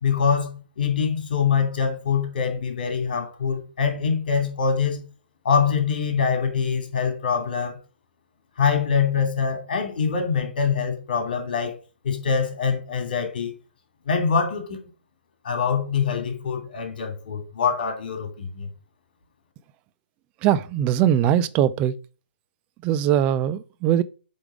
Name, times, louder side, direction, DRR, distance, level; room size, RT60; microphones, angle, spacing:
voice 1, 0.0-5.0 5.4-7.8 8.6-11.7 12.0-13.5 14.1-14.8 15.4-18.7, left 6 dB, 50° left, 2.5 m, -24 dB
voice 2, 20.4-22.0 22.8-24.0, right 10 dB, 20° right, 0.4 m, -21 dB
7.8 x 3.6 x 4.9 m
figure-of-eight pair, 130°, 6 cm